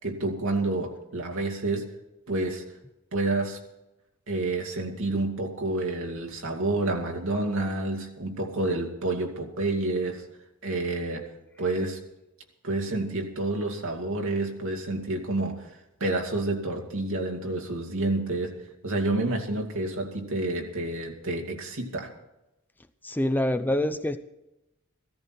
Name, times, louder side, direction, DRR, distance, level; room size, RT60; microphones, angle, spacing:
voice 1, 0.0-1.8 2.3-2.6 3.1-3.6 4.3-10.2 10.6-11.2 11.6-12.0 12.6-15.6 16.0-18.5 18.8-22.1, right 2 dB, 65° right, 1 dB, 2.5 m, -29 dB
voice 2, 23.0-24.2, left 1 dB, 10° left, 10 dB, 0.5 m, -25 dB
16.0 x 14.0 x 4.5 m, 0.92 s
head